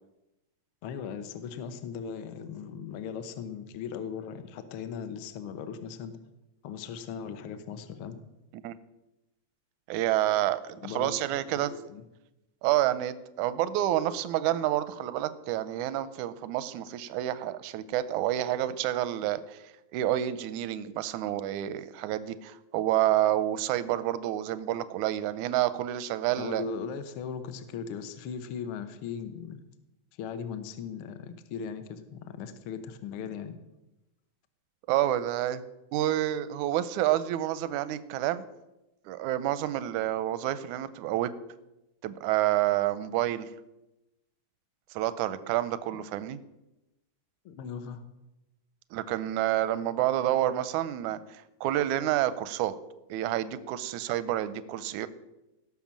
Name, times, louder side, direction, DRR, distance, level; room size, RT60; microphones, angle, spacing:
voice 1, 0.8-6.1 6.6-8.2 10.8-11.2 11.5-12.0 26.4-29.6 30.2-33.6 46.0-46.1 47.4-48.0, left 7 dB, 60° left, 10 dB, 1.5 m, -38 dB
voice 2, 9.9-11.7 12.6-19.6 19.9-26.6 34.9-35.6 35.9-38.4 39.1-41.3 42.0-43.5 44.9-46.4 48.9-52.7 53.1-55.1, right 13 dB, 85° right, 14 dB, 2.1 m, -29 dB
17.5 x 6.1 x 7.4 m, 0.95 s
omnidirectional pair, 3.3 m